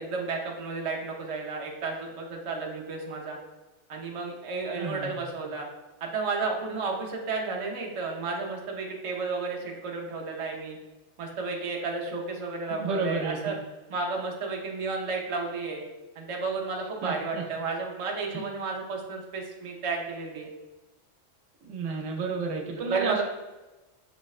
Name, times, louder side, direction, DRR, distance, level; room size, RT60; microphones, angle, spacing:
voice 1, 0.0-3.4 3.9-5.7 6.0-10.8 11.2-13.5 13.9-15.8 16.2-20.5 22.9-23.2, right 4 dB, 50° right, 0 dB, 0.4 m, -32 dB
voice 2, 4.7-5.2 12.8-13.5 17.0-17.4 18.3-18.4 21.6-23.2, right 4 dB, 75° right, 1 dB, 0.9 m, -31 dB
6.0 x 2.1 x 2.3 m, 1.1 s
omnidirectional pair, 1.3 m